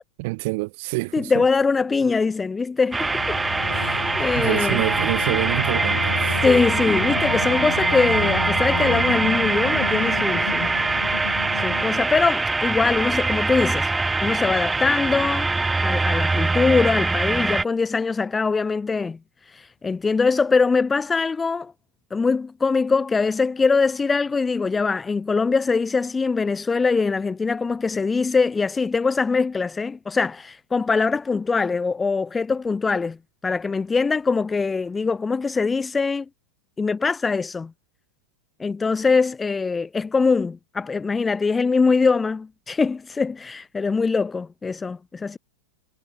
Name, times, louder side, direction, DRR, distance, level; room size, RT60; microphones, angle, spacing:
voice 1, 0.2-1.4 4.4-6.4, right 25 dB, 50° right, 3.6 m, -27 dB
voice 2, 1.1-3.4 3.7-4.8 6.4-10.8 11.6-13.9 14.2-15.5 15.8-19.2 19.5-21.7 22.1-33.2 33.4-36.3 36.8-37.7 38.6-45.4, left 4 dB, 15° left, 0.5 m, -22 dB
sound 1, 2.9-17.6, right 3 dB, 10° right, 1.3 m, -23 dB
sound 2, 3.0-12.2, left 5 dB, 75° left, 3.4 m, -32 dB
figure-of-eight pair, 90°, 0 cm